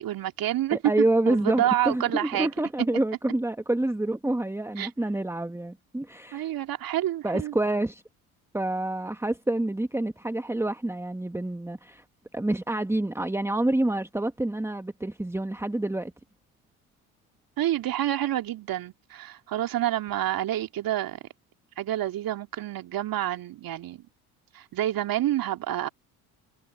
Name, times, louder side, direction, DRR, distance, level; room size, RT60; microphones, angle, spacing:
voice 1, 0.0-0.8 1.3-2.5 4.8-4.9 6.3-7.5 17.6-21.2 21.8-24.0 24.5-25.9, right 13 dB, 50° right, 2.7 m, -28 dB
voice 2, 0.7-6.5 7.2-8.0 8.5-12.0 12.3-16.1, right 1 dB, 5° right, 2.0 m, -27 dB
figure-of-eight pair, 60°, 45 cm